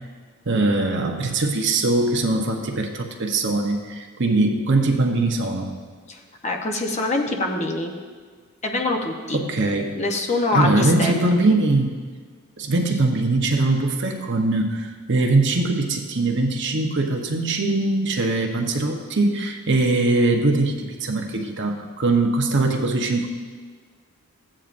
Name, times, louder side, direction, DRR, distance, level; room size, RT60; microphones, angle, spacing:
voice 1, 0.5-5.7 9.3-10.0 10.5-11.9 12.6-23.3, right 2 dB, 50° right, 2 dB, 0.9 m, -21 dB
voice 2, 6.1-7.9 8.6-9.4 9.9-11.1 11.5-11.6, left 2 dB, 30° left, 2 dB, 0.9 m, -24 dB
15.0 x 8.7 x 2.6 m, 1.5 s
head